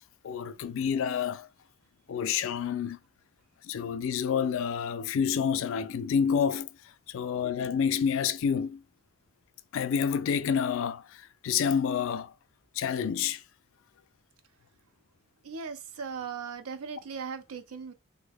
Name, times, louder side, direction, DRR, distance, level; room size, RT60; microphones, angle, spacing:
voice 1, 0.2-1.5 2.1-3.0 3.6-6.7 7.1-8.8 9.7-12.3 12.8-13.4, left 7 dB, 60° left, 0.3 m, -28 dB
voice 2, 15.4-17.9, right 6 dB, 75° right, 0.5 m, -38 dB
3.5 x 2.0 x 3.4 m
head